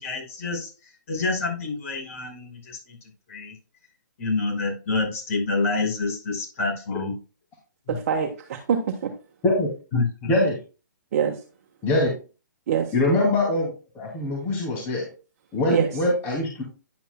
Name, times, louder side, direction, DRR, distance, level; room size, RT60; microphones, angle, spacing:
voice 1, 0.0-3.0 3.3-3.6 4.2-7.1 7.9-8.0 9.9-10.3, left 3 dB, 45° left, 5.3 m, -28 dB
voice 2, 7.9-9.1 11.1-11.4 12.7-12.9 15.7-15.9, right 7 dB, 45° right, 1.2 m, -24 dB
voice 3, 12.9-15.1 15.5-16.6, left 1 dB, 20° left, 2.5 m, -23 dB
10.5 x 8.1 x 2.2 m
hypercardioid pair, 145°, 10 cm